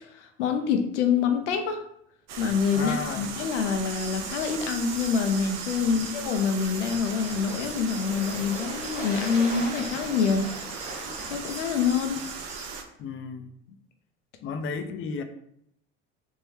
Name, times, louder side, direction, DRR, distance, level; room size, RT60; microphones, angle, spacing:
voice 1, 0.1-1.8 2.4-10.5 11.3-12.2, left 6 dB, 90° left, 5 dB, 0.5 m, -26 dB
sound 1, 2.3-12.8, right 6 dB, 50° right, 0.6 m, -38 dB
voice 2, 2.7-3.4 5.9-6.1 13.0-13.5 14.4-15.2, left 5 dB, 40° left, 8 dB, 0.5 m, -33 dB
sound 2, 3.9-12.8, right 3 dB, 80° right, 1.1 m, -43 dB
Waves surf, 6.2-11.9, right 1 dB, 20° right, 1.3 m, -41 dB
3.5 x 2.1 x 3.1 m, 0.74 s
hypercardioid pair, 75°, 35 cm